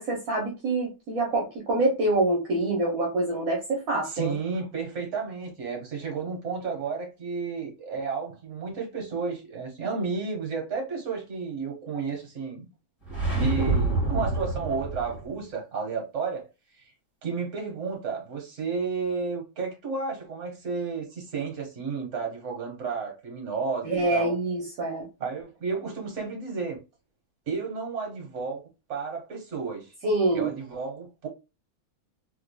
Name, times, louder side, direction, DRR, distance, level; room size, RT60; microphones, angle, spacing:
voice 1, 0.0-4.3 23.8-25.0 30.0-30.5, right 2 dB, 65° right, 1.4 m, -26 dB
voice 2, 4.0-12.7 13.3-16.4 16.8-16.9 17.2-24.3 25.2-26.8 27.5-29.9 30.3-31.3, right 5 dB, 50° right, 1.6 m, -32 dB
sound 1, 13.0-15.3, right 2 dB, 20° left, 2.1 m, -27 dB
3.6 x 3.3 x 2.2 m
omnidirectional pair, 1.6 m